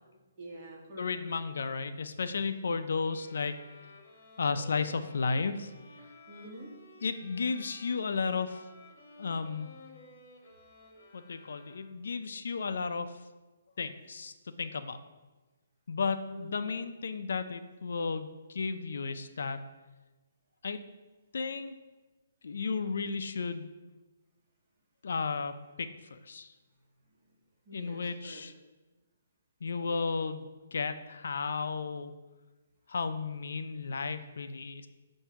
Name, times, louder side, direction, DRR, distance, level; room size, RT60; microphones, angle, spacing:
voice 1, 0.4-1.4 6.3-6.7 16.3-16.7 27.7-28.4, right 1 dB, 30° right, -3 dB, 1.5 m, -47 dB
voice 2, 1.0-3.6 4.4-5.7 7.0-8.6 9.2-9.7 11.1-13.2 13.8-14.3 14.6-15.0 15.9-19.6 20.6-20.8 21.3-21.7 22.4-23.7 25.0-26.5 27.7-28.5 29.6-32.1 32.9-34.9, left 4 dB, 70° left, 10 dB, 0.4 m, -33 dB
sound 1, 3.0-12.2, left 2 dB, 35° left, 1.1 m, -54 dB
7.2 x 2.6 x 5.6 m, 1.2 s
hypercardioid pair, 165°, 0 cm